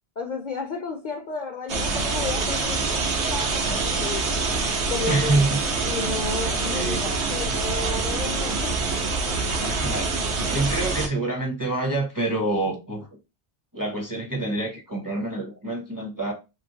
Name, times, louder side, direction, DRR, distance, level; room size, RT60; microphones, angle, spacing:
voice 1, 0.2-4.3 4.9-5.6 5.8-8.7, left 4 dB, 55° left, 0.5 m, -33 dB
sound 1, 1.7-11.1, right 3 dB, 80° right, 1.1 m, -25 dB
voice 2, 5.1-5.6 6.1-6.2 6.7-7.0 9.6-13.1 13.7-16.3, right 2 dB, 25° right, 0.5 m, -27 dB
3.0 x 2.9 x 2.7 m
omnidirectional pair, 1.1 m